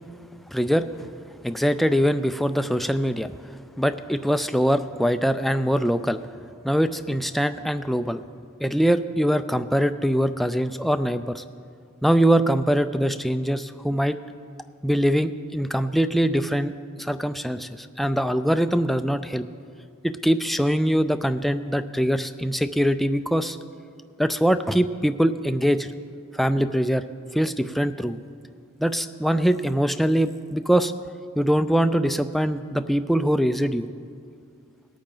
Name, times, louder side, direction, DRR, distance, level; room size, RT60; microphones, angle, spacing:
voice 1, 0.5-0.9 1.4-3.3 3.8-6.2 6.6-8.2 8.6-11.4 12.0-14.2 14.8-16.7 17.0-19.4 20.0-23.6 24.2-25.9 26.3-27.0 27.3-28.2 28.8-30.9 31.4-33.9, equal, ahead, 10 dB, 0.3 m, -23 dB
19.0 x 8.8 x 3.8 m, 2.2 s
head